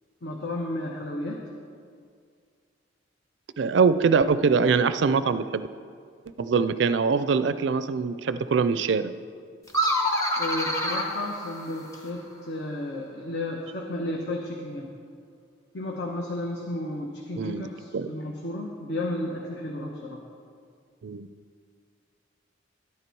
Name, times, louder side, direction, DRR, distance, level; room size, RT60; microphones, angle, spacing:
voice 1, 0.2-1.4 10.4-14.9 15.7-20.2, left 1 dB, 60° left, -1 dB, 1.0 m, -33 dB
voice 2, 3.6-5.7 6.4-9.1 17.4-18.1 21.0-21.3, right 5 dB, 65° right, 13 dB, 0.4 m, -23 dB
sound 1, 9.7-12.2, equal, 15° left, 1.0 m, -27 dB
12.0 x 9.7 x 4.6 m, 2.2 s
head